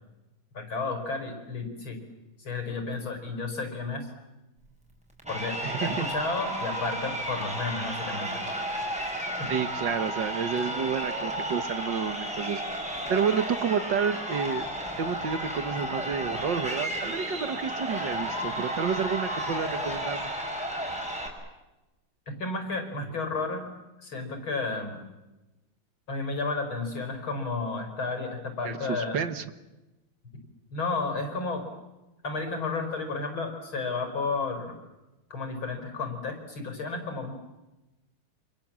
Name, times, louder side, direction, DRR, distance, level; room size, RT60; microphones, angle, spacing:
voice 1, 0.5-2.0 2.4-4.1 5.3-8.3 9.0-9.5 22.4-23.7 24.0-25.0 26.1-29.2 30.7-31.6 32.2-34.8 35.3-37.3, left 3 dB, 75° left, 6 dB, 5.6 m, -32 dB
Crowd, 5.2-21.3, equal, 5° right, 5.5 m, -33 dB
voice 2, 5.6-6.1 9.5-12.6 13.1-14.7 15.0-20.3 28.6-29.5, right 7 dB, 65° right, 11 dB, 1.9 m, -30 dB
29.0 x 27.0 x 7.5 m, 1.0 s
omnidirectional pair, 2.3 m